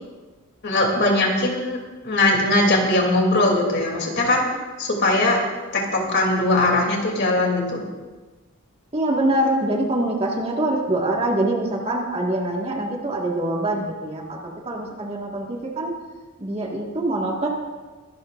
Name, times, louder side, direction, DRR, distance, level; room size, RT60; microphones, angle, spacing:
voice 1, 0.6-4.5 4.8-5.4 5.7-7.8, left 2 dB, 50° left, 0 dB, 2.9 m, -20 dB
voice 2, 8.9-15.9 16.4-17.5, right 1 dB, 25° right, -1 dB, 1.8 m, -24 dB
23.0 x 12.5 x 2.5 m, 1.3 s
head